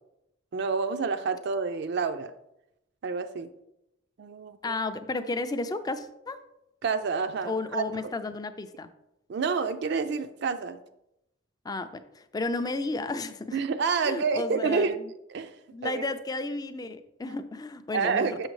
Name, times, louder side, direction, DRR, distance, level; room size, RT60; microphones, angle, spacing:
voice 1, 0.5-2.3 3.0-3.5 4.2-4.7 6.8-8.1 9.3-10.8 13.5-15.0 15.3-15.5 15.8-16.0 17.9-18.5, right 5 dB, 55° right, 9 dB, 0.4 m, -28 dB
voice 2, 4.6-6.4 7.4-8.9 11.6-13.6 14.0-15.1 15.7-18.5, left 2 dB, 20° left, 10 dB, 0.3 m, -33 dB
6.6 x 6.3 x 3.2 m, 0.86 s
head